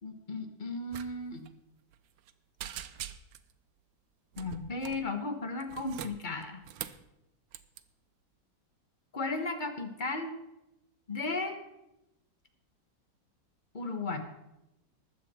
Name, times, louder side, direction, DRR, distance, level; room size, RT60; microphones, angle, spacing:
voice 1, 0.0-1.5 4.4-6.6 9.1-10.3 11.1-11.6 13.7-14.2, left 3 dB, 30° left, 6 dB, 1.3 m, -35 dB
sound 1, 0.9-1.1 1.3-1.5 1.9-2.3 2.6-3.5 4.3-5.1 5.6-7.1 7.5-7.8, right 11 dB, 90° right, 1.4 m, -43 dB
20.0 x 7.7 x 4.3 m, 0.91 s
omnidirectional pair, 2.0 m